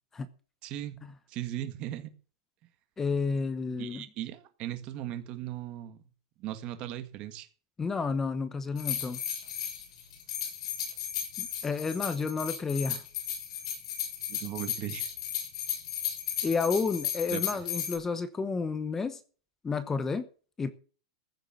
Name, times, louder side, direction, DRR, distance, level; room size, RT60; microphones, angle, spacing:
voice 1, 0.6-1.0 1.3-2.1 3.8-6.0 6.4-7.5 14.3-15.1 17.3-17.4, right 13 dB, 35° right, 1.7 m, -37 dB
voice 2, 3.0-4.0 7.8-9.2 11.4-13.0 16.4-19.2 19.6-20.3 20.6-20.7, left 4 dB, 10° left, 0.9 m, -31 dB
sound 1, 8.8-18.0, left 9 dB, 65° left, 6.9 m, -35 dB
15.0 x 6.7 x 7.7 m
supercardioid pair, 165°, 3 cm